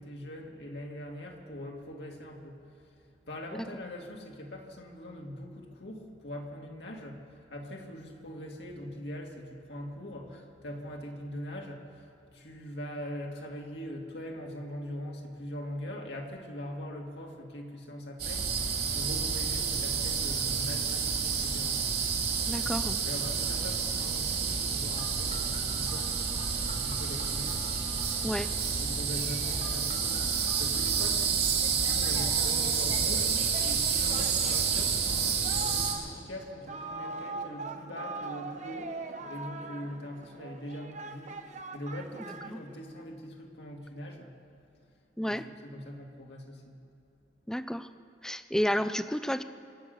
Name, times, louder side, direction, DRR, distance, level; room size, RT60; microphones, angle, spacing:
voice 1, 0.0-27.6 28.1-28.4 28.8-41.4 41.7-44.3 45.2-46.8, equal, 70° left, 0 dB, 2.2 m, -42 dB
sound 1, 18.2-35.9, right 6 dB, 60° right, 3.2 m, -29 dB
voice 2, 22.5-23.0 28.2-28.5 42.5-42.6 45.2-45.5 47.5-47.9 48.2-49.4, equal, 5° left, 12 dB, 0.5 m, -31 dB
Telephone, 25.0-28.3 29.6-31.1 31.6-33.2, left 2 dB, 40° left, 1.6 m, -47 dB
Singing, 32.1-43.0, right 3 dB, 40° right, 0.8 m, -42 dB
25.0 x 8.5 x 6.5 m, 2.7 s
head